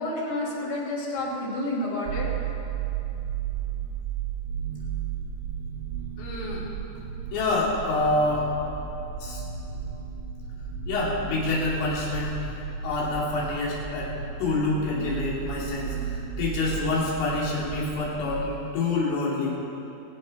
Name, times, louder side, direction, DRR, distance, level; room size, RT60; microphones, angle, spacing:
voice 1, 0.0-2.3, left 1 dB, 60° left, -5 dB, 4.3 m, -29 dB
sound 1, 2.1-18.4, right 8 dB, 85° right, 3.3 m, -34 dB
voice 2, 6.2-6.7 7.3-8.5 9.2-9.4 10.9-12.3 12.8-14.1 14.4-19.6, left 3 dB, 85° left, -5 dB, 5.4 m, -27 dB
23.5 x 8.6 x 5.6 m, 2.9 s
omnidirectional pair, 5.5 m